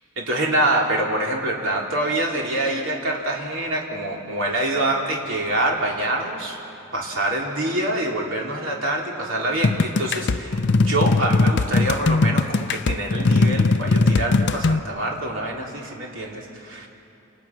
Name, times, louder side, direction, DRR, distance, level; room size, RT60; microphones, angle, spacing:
voice 1, 0.2-6.6 6.9-16.9, right 1 dB, 60° right, -1 dB, 3.8 m, -25 dB
sound 1, 9.6-14.8, left 3 dB, 55° left, 0.6 m, -20 dB
29.0 x 28.0 x 6.1 m, 2.8 s
head